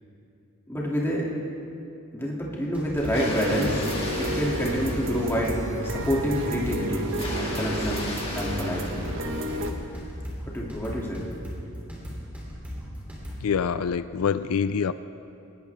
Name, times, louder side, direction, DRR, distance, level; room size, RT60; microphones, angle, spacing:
voice 1, 0.7-1.3 2.1-3.8 4.2-5.6 5.8-7.1 7.4-8.1 8.4-9.0 10.5-11.3, equal, 10° left, -4 dB, 2.6 m, -27 dB
sound 1, 2.6-13.4, equal, 5° right, 3.0 m, -38 dB
Water, 3.0-5.8 7.0-9.8, left 2 dB, 25° left, 2.1 m, -37 dB
sound 2, 3.3-9.7, right 1 dB, 60° right, 1.3 m, -31 dB
voice 2, 13.4-14.9, left 6 dB, 80° left, 14 dB, 0.4 m, -25 dB
21.5 x 18.5 x 3.5 m, 2.7 s
head